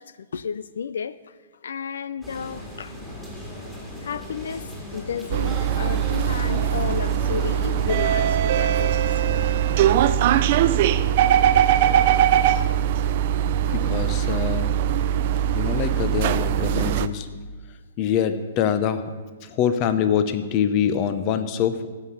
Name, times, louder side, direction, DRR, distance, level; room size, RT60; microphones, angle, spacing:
voice 1, 0.0-1.3 1.6-2.9 4.0-9.5, left 6 dB, 85° left, 0.5 m, -33 dB
sound 1, 2.2-8.3, equal, 5° left, 2.3 m, -36 dB
sound 2, 5.3-17.1, right 10 dB, 40° right, 0.5 m, -21 dB
voice 2, 13.4-14.7 15.5-17.3 18.0-19.1 19.4-21.9, left 8 dB, 25° left, 0.8 m, -24 dB
15.0 x 5.9 x 8.3 m
hypercardioid pair, 165°, 0 cm